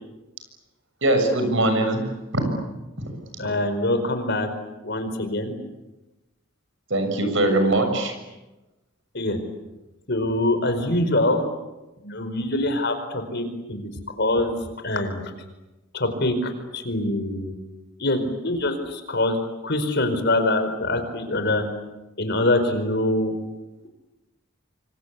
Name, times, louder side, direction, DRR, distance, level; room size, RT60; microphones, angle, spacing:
voice 1, 1.0-2.1 2.3-2.4 3.0-3.1 6.9-8.1, right 1 dB, 65° right, 6 dB, 6.9 m, -21 dB
voice 2, 3.4-4.5 4.8-5.5 9.1-9.4 10.1-11.4 12.0-13.8 14.2-14.6 14.8-15.2 15.9-17.5 18.0-19.4 19.6-21.6 22.2-23.3, left 1 dB, 55° left, 8 dB, 4.7 m, -24 dB
26.5 x 26.0 x 8.4 m, 1.0 s
head